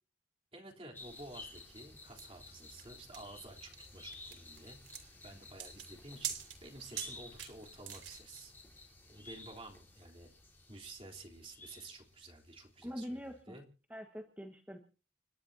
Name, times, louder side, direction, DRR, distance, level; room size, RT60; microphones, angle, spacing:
voice 1, 0.5-10.3 10.7-13.6, right 2 dB, 30° right, 0 dB, 3.6 m, -52 dB
sound 1, 0.9-12.6 12.9-13.0, left 2 dB, 10° left, 4.0 m, -54 dB
sound 2, 2.2-8.4, right 9 dB, 85° right, 4.4 m, -45 dB
voice 2, 12.8-13.6 13.9-14.8, equal, 10° right, 2 dB, 1.5 m, -44 dB
30.0 x 12.0 x 2.8 m, 0.36 s
head